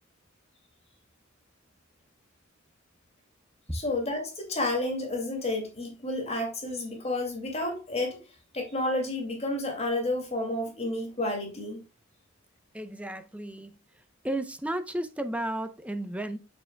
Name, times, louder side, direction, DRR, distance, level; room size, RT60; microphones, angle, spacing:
voice 1, 3.7-8.2 8.5-11.8, left 2 dB, 30° left, 2.4 m, -30 dB
voice 2, 12.7-13.8 14.2-16.4, right 1 dB, 5° right, 0.7 m, -33 dB
7.0 x 6.8 x 2.3 m
head